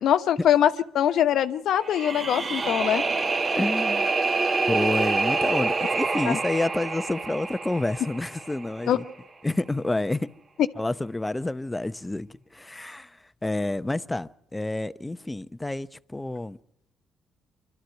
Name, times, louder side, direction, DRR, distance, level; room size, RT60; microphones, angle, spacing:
voice 1, 0.0-3.0 6.3-6.4 8.9-9.0, left 10 dB, 75° left, 1.1 m, -22 dB
sound 1, 1.8-8.9, right 3 dB, 40° right, 1.8 m, -27 dB
voice 2, 3.6-4.1 4.7-9.0 9.4-10.3 10.8-13.1 13.4-16.6, left 2 dB, 15° left, 0.7 m, -29 dB
25.5 x 13.0 x 9.1 m
cardioid pair, 90°, 0 cm